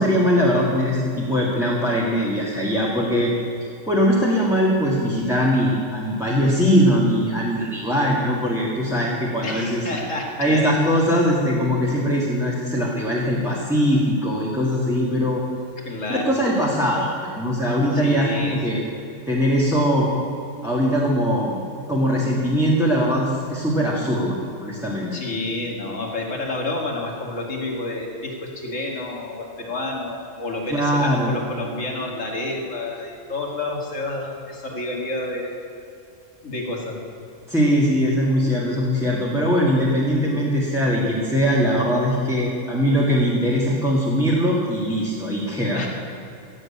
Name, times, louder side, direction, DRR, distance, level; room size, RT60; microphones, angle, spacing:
voice 1, 0.0-3.3 3.9-9.8 10.4-15.4 16.1-18.8 19.3-20.1 20.6-21.6 21.9-25.1 30.7-31.3 37.5-45.8, equal, ahead, -5 dB, 1.9 m, -21 dB
voice 2, 9.4-10.7 15.8-16.3 17.9-18.8 25.1-35.5 36.4-37.0 45.7-45.9, left 2 dB, 75° left, 0 dB, 2.6 m, -29 dB
16.5 x 8.0 x 8.7 m, 2.5 s
omnidirectional pair, 1.3 m